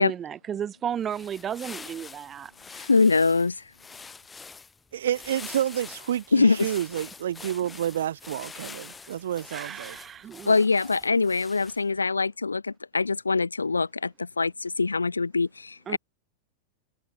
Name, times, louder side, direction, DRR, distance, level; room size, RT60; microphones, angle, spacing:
voice 1, 0.0-2.5 9.5-10.5 15.9-16.0, right 9 dB, 25° right, 1.6 m, -33 dB
sound 1, 0.9-12.0, left 4 dB, 15° left, 4.3 m, -45 dB
voice 2, 2.8-3.6 6.3-6.7 10.5-16.0, left 4 dB, 80° left, 0.6 m, -23 dB
voice 3, 4.9-10.0, right 11 dB, 60° right, 1.7 m, -29 dB
figure-of-eight pair, 90°, 0 cm